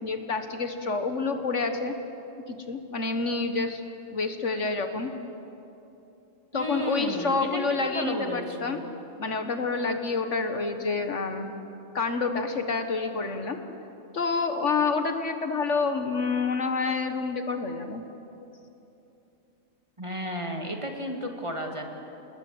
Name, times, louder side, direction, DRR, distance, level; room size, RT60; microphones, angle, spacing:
voice 1, 0.0-2.0 2.5-3.8 4.1-5.1 6.5-8.8 9.2-11.5 11.9-13.6 14.1-18.0, left 4 dB, 60° left, 7 dB, 1.7 m, -28 dB
voice 2, 6.5-8.9 20.0-21.8, equal, 20° right, 2 dB, 2.4 m, -33 dB
28.0 x 21.0 x 7.9 m, 2.9 s
omnidirectional pair, 1.4 m